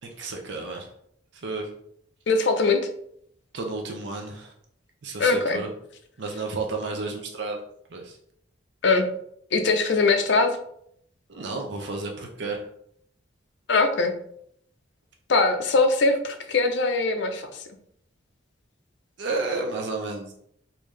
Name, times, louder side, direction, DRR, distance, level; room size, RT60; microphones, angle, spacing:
voice 1, 0.0-0.9 1.4-1.7 3.5-4.5 5.0-5.7 6.2-7.6 7.9-8.2 11.3-12.7 19.2-20.3, right 3 dB, 60° right, 2 dB, 0.5 m, -31 dB
voice 2, 2.3-2.8 5.2-5.6 8.8-9.1 9.5-10.6 13.7-14.2 15.3-17.5, left 3 dB, 60° left, 6 dB, 0.5 m, -21 dB
3.5 x 2.7 x 3.1 m, 0.69 s
head